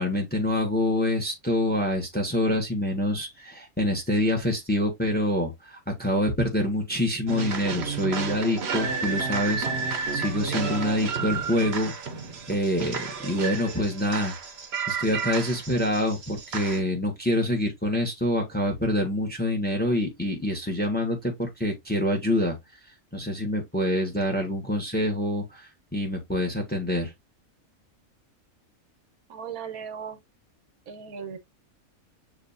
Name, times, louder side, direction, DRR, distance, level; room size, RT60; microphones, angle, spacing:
voice 1, 0.0-11.9 12.5-14.3 14.9-22.6 23.1-27.1, left 1 dB, 10° left, 1.1 m, -26 dB
sound 1, 7.3-16.8, right 5 dB, 55° right, 1.0 m, -31 dB
voice 2, 29.3-30.2 30.9-31.4, right 7 dB, 85° right, 1.4 m, -37 dB
7.0 x 2.8 x 2.6 m
omnidirectional pair, 1.5 m